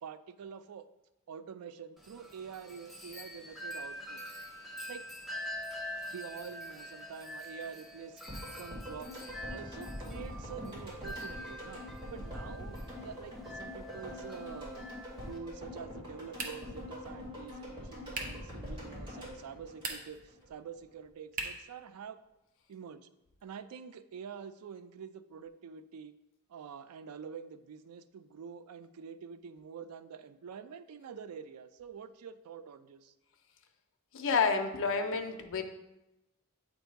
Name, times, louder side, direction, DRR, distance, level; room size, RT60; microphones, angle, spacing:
voice 1, 0.0-0.9 1.3-4.3 4.9-5.0 6.1-8.2 8.6-11.8 12.1-14.9 15.2-22.2 22.7-23.1 23.4-26.1 26.5-33.1, right 7 dB, 85° right, 12 dB, 0.4 m, -47 dB
Wind chime, 2.0-15.4, equal, ahead, 0.6 m, -45 dB
sound 1, 8.3-20.5 20.7-20.8, left 1 dB, 20° right, 2.1 m, -44 dB
sound 2, 16.3-16.8 18.1-18.5 19.7-20.3 21.3-21.7, right 3 dB, 40° right, 0.8 m, -39 dB
voice 2, 34.1-35.6, left 5 dB, 65° left, 6 dB, 0.6 m, -29 dB
7.8 x 2.7 x 4.5 m, 0.96 s
head